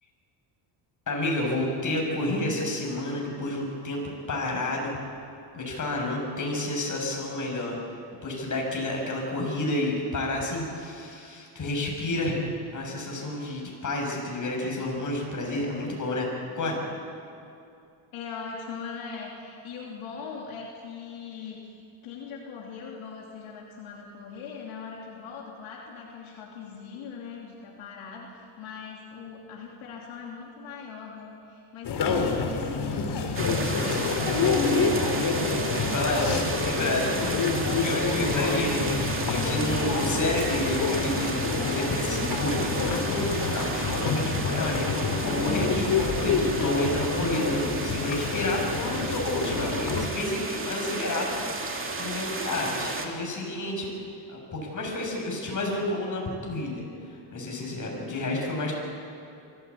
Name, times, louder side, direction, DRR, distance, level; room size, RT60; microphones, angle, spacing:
voice 1, 1.1-5.0 5.5-7.8 8.2-16.8 35.7-41.3 41.6-53.9 54.3-56.9 57.3-58.7, left 1 dB, 40° left, -1 dB, 7.4 m, -30 dB
voice 2, 18.1-35.1 58.1-58.7, left 6 dB, 80° left, -2 dB, 3.1 m, -40 dB
sound 1, 31.8-50.1, left 4 dB, 55° left, 3.3 m, -27 dB
sound 2, 33.3-53.1, right 3 dB, 25° right, 2.7 m, -33 dB
24.0 x 16.0 x 8.6 m, 2.6 s
cardioid pair, 100°, 48 cm